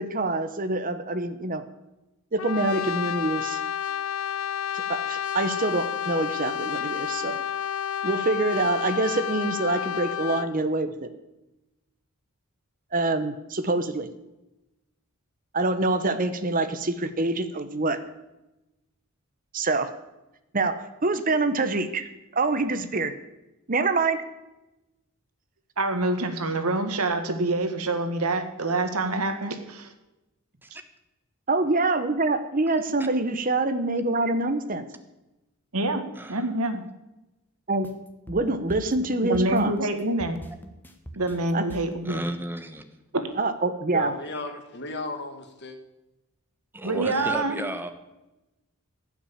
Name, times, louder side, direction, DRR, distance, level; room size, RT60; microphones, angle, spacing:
voice 1, 0.0-1.6 2.3-3.6 4.7-7.4 8.0-11.1 12.9-14.1 15.5-18.0 19.5-19.9 20.5-22.1 22.3-23.1 23.7-24.2 31.5-34.9 37.7-37.9 38.3-39.7 41.5-41.6 43.4-44.1, right 2 dB, 40° right, 10 dB, 1.0 m, -25 dB
Brass instrument, 2.4-10.6, left 9 dB, 65° left, 0.4 m, -30 dB
voice 2, 25.8-29.9 35.7-36.8 39.2-40.4 41.1-42.2 43.1-43.3 46.8-47.6, right 2 dB, 85° right, 7 dB, 1.7 m, -26 dB
voice 3, 36.2-36.5 42.0-42.8 46.7-47.9, right 1 dB, 10° right, 8 dB, 1.1 m, -33 dB
sound 1, 37.8-42.0, equal, 10° left, 1.2 m, -42 dB
voice 4, 43.9-45.8 46.8-47.4, left 2 dB, 50° left, 6 dB, 1.7 m, -35 dB
15.5 x 6.2 x 8.7 m, 0.97 s
head